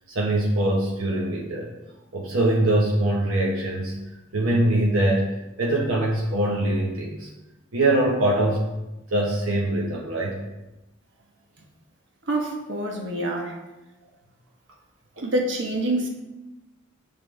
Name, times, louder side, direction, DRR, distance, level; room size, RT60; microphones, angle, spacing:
voice 1, 0.1-1.7 2.1-3.9 4.3-7.3 7.7-8.7 9.1-10.4 15.2-15.3, right 1 dB, 90° right, -2 dB, 1.0 m, -23 dB
voice 2, 12.3-13.6 15.2-16.1, right 1 dB, 60° right, 1 dB, 1.1 m, -26 dB
6.9 x 5.6 x 3.2 m, 1.0 s
head